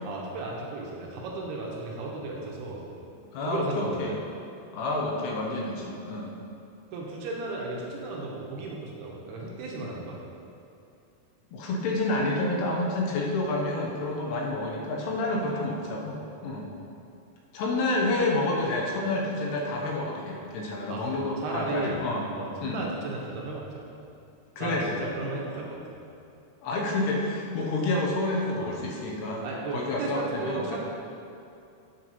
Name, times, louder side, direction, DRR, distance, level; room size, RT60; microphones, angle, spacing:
voice 1, 0.0-2.8 3.5-4.2 6.9-10.2 20.9-22.0 22.3-23.9 24.6-25.8 28.6-28.7 29.4-30.8, right 3 dB, 80° right, -2 dB, 2.9 m, -35 dB
voice 2, 3.3-4.2 4.7-6.3 11.5-16.7 17.5-22.2 22.6-22.8 24.6-25.1 26.6-29.4 29.7-30.8, left 2 dB, 80° left, -1 dB, 3.0 m, -29 dB
8.6 x 4.7 x 5.4 m, 2.5 s
omnidirectional pair, 4.8 m